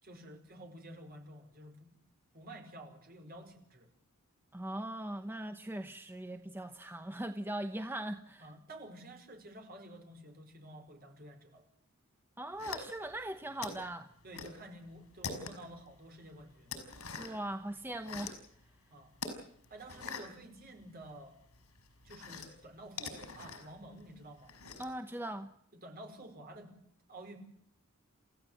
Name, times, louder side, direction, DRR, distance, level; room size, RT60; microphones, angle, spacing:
voice 1, 0.0-1.9 2.3-3.9 8.4-11.7 14.2-16.7 18.9-19.1 19.7-21.3 22.0-24.5 25.7-26.7 27.1-27.4, right 1 dB, 45° right, 4 dB, 4.8 m, -51 dB
voice 2, 4.5-8.5 12.4-14.1 17.2-18.4 24.8-25.5, right 1 dB, 10° right, 8 dB, 0.9 m, -40 dB
sound 1, 12.6-13.2 13.6-14.6 14.9-15.8 16.2-17.5 17.8-18.5 19.1-21.2 21.5-25.0, left 4 dB, 85° left, 5.4 m, -44 dB
29.0 x 15.0 x 7.9 m, 0.69 s
head